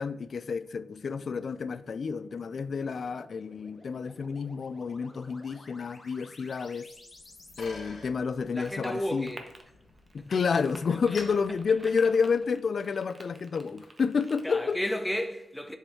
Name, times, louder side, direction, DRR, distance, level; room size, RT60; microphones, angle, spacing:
voice 1, 0.0-6.9 7.6-9.3 10.1-14.8, left 5 dB, 55° left, 0.3 m, -29 dB
sound 1, 0.6-7.6, left 2 dB, 30° left, 0.9 m, -54 dB
Bicycle, 6.9-12.6, left 2 dB, 75° left, 2.1 m, -50 dB
sound 2, 8.4-14.7, right 2 dB, 30° right, 0.9 m, -51 dB
voice 2, 8.5-9.5 10.2-10.3 11.1-11.2 14.4-15.8, equal, 5° left, 0.6 m, -33 dB
7.2 x 3.2 x 4.2 m
wide cardioid pair, 100°, 0 cm